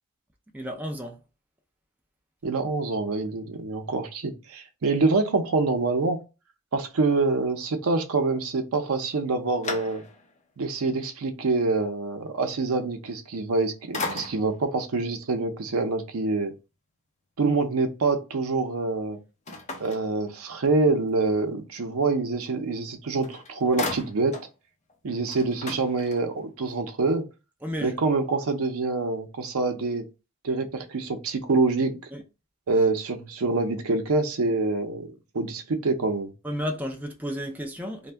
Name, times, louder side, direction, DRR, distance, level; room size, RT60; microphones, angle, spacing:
voice 1, 0.5-1.2 27.6-28.0 32.1-32.2 36.4-38.1, equal, 10° right, 0.3 m, -32 dB
voice 2, 2.4-6.2 6.7-10.0 10.6-16.5 17.4-19.2 19.8-24.4 25.0-27.2 27.8-30.0 30.4-32.0 32.7-36.3, right 3 dB, 80° right, 0.6 m, -26 dB
sound 1, 9.0-10.4 10.9-11.0 13.3-13.6 13.9-14.7 19.5-20.7 22.8-22.9 23.2-24.5 24.9-25.0 25.2-26.5, left 3 dB, 35° left, 0.6 m, -36 dB
2.6 x 2.2 x 3.3 m
head